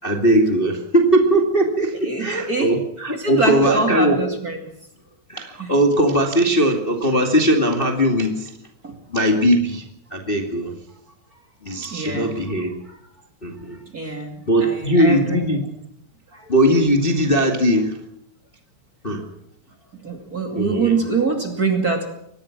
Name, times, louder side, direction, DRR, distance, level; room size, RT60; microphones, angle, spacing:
voice 1, 0.0-4.2 5.3-8.5 9.1-9.8 10.1-10.7 11.6-12.7 13.4-13.8 14.5-15.7 16.5-18.0 19.0-19.2 20.6-21.0, right 1 dB, 20° left, 3 dB, 2.1 m, -19 dB
voice 2, 2.0-2.7 3.2-4.6 5.6-5.7 8.8-8.9 11.8-12.4 13.9-15.4 16.3-16.5 20.0-22.1, right 3 dB, 30° right, 4 dB, 2.7 m, -24 dB
24.0 x 19.5 x 6.1 m, 0.74 s
omnidirectional pair, 3.6 m